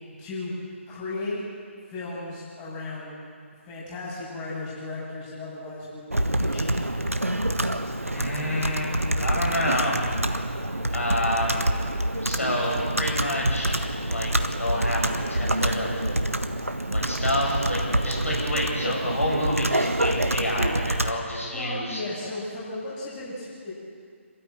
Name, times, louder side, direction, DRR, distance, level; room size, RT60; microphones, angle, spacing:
voice 1, 0.2-0.5 0.9-1.4 1.9-3.2 3.6-6.8 21.5-23.7, left 2 dB, 20° left, -6 dB, 7.1 m, -35 dB
Computer keyboard, 6.1-21.1, right 1 dB, 85° right, 1.4 m, -26 dB
voice 2, 8.1-8.9 9.2-10.0 10.9-11.7 12.2-13.8 14.1-14.3 14.6-16.0 16.9-22.0, left 1 dB, 80° left, -3 dB, 8.0 m, -28 dB
27.0 x 13.5 x 8.9 m, 2.1 s
figure-of-eight pair, 140°, 7 cm